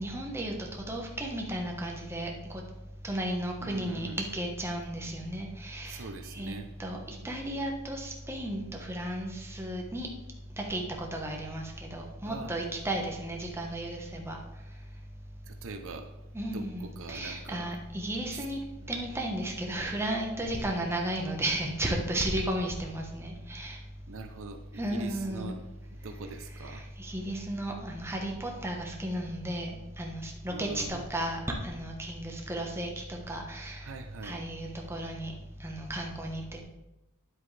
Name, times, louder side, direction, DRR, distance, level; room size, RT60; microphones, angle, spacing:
voice 1, 0.0-2.3 3.0-6.0 6.3-6.5 6.8-7.0 7.2-10.1 10.6-14.4 16.3-18.6 18.9-23.8 24.8-25.6 27.0-29.7 30.0-33.8 34.2-35.3 35.6-36.6, right 1 dB, 10° right, 0 dB, 1.2 m, -34 dB
voice 2, 3.6-4.2 5.9-6.7 12.3-12.6 15.4-16.1 16.5-17.7 18.3-18.4 18.8-19.0 20.4-20.8 24.1-26.8 30.5-31.1 33.8-34.4, right 3 dB, 65° right, 7 dB, 0.7 m, -43 dB
9.8 x 7.9 x 3.3 m, 0.99 s
head